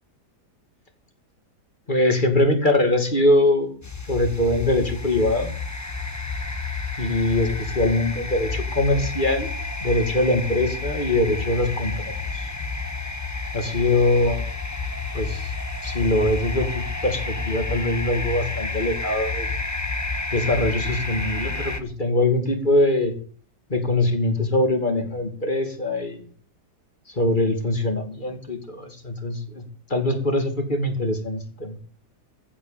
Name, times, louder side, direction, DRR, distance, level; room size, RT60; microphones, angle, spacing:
voice 1, 1.9-3.8 4.1-5.5 7.0-9.5 9.8-12.5 13.5-14.4 15.1-15.5 15.8-19.5 20.3-23.2 23.7-26.2 27.1-29.6 29.9-31.8, left 1 dB, 30° left, 6 dB, 2.7 m, -22 dB
sound 1, 3.8-21.8, left 3 dB, 10° left, 0.9 m, -30 dB
15.0 x 7.7 x 7.4 m, 0.43 s
omnidirectional pair, 1.8 m